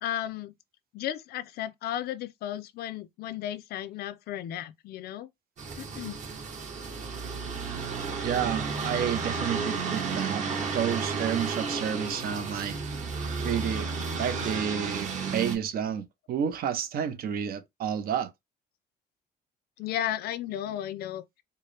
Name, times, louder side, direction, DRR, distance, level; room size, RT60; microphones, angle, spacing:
voice 1, 0.0-0.5 0.9-5.3 5.8-6.2 19.8-21.2, left 11 dB, 70° left, 0.5 m, -34 dB
sound 1, 5.6-15.6, right 4 dB, 45° right, 1.2 m, -32 dB
voice 2, 8.2-10.4 10.7-12.8 13.4-13.9 14.2-18.3, right 8 dB, 60° right, 0.8 m, -30 dB
4.5 x 2.1 x 3.2 m
cardioid pair, 110°, 17 cm